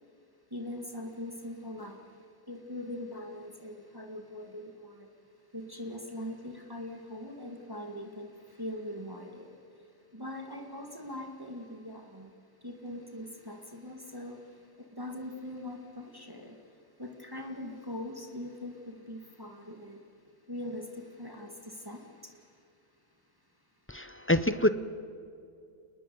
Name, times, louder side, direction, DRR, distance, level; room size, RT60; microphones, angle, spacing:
voice 1, 0.5-2.0 2.5-5.1 5.5-9.5 10.1-12.3 12.6-14.4 14.8-16.6 17.0-20.0 20.5-22.3, left 1 dB, 15° right, 3 dB, 2.2 m, -41 dB
voice 2, 23.9-24.7, left 1 dB, 15° left, 12 dB, 0.4 m, -26 dB
28.5 x 20.5 x 7.9 m, 2.5 s
omnidirectional pair, 1.5 m